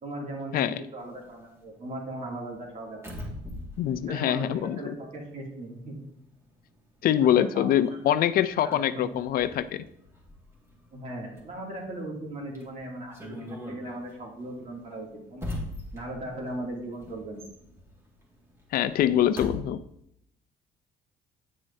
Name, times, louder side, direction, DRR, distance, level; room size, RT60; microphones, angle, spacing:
voice 1, 0.0-0.5 0.9-3.2 4.1-6.0 7.2-8.0 8.6-9.1 10.9-13.4 13.7-15.5 15.9-17.4, right 1 dB, 45° right, -2 dB, 2.5 m, -38 dB
sound 1, 1.0-5.4 5.7-19.6, left 1 dB, 15° right, 2.0 m, -43 dB
voice 2, 3.8-5.0 7.0-9.8 18.7-19.8, left 11 dB, 60° left, 14 dB, 0.4 m, -24 dB
9.2 x 6.3 x 2.7 m, 0.76 s
cardioid pair, 110°, 17 cm